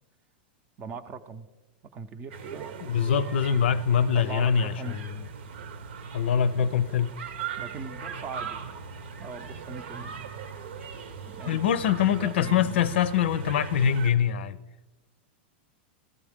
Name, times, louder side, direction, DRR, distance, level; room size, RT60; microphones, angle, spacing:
voice 1, 0.8-1.5 1.9-3.0 4.1-5.0 7.6-8.7 9.2-10.3 11.3-11.7 12.0-13.0, right 5 dB, 25° right, 0.6 m, -40 dB
sound 1, 2.3-14.1, right 6 dB, 75° right, 0.9 m, -39 dB
voice 2, 2.8-5.2 6.1-7.1 11.5-14.6, left 8 dB, 80° left, 0.6 m, -24 dB
15.0 x 14.0 x 3.6 m
supercardioid pair, 150°, 6 cm